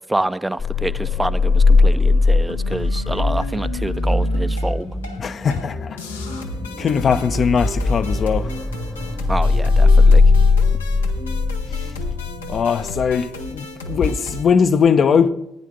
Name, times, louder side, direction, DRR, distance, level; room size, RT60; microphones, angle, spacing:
voice 1, 0.1-4.9 9.3-10.2, right 1 dB, 15° right, 0.4 m, -26 dB
sound 1, 0.6-13.2, left 3 dB, 30° left, 0.9 m, -19 dB
sound 2, 2.5-5.2 5.5-5.7 6.0-14.4, left 3 dB, 85° left, 0.6 m, -35 dB
voice 2, 5.2-6.0 6.8-8.5 12.5-15.3, left 6 dB, 50° left, 0.5 m, -19 dB
sound 3, 5.7-14.4, right 2 dB, 90° right, 3.0 m, -39 dB
15.5 x 9.2 x 3.3 m
figure-of-eight pair, 45°, 0 cm